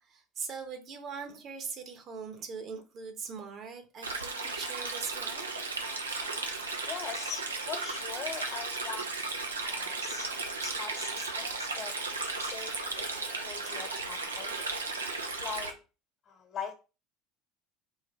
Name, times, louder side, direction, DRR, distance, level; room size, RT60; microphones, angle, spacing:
voice 1, 0.1-5.5, right 5 dB, 45° right, 1.1 m, -41 dB
Stream, 4.0-15.7, right 3 dB, 90° right, 0.6 m, -35 dB
voice 2, 6.9-9.1 9.6-10.3 10.6-11.9 12.4-14.7 15.4-15.7 16.3-16.7, left 6 dB, 40° left, 1.2 m, -41 dB
3.8 x 2.7 x 4.3 m
hypercardioid pair, 70°, 0 cm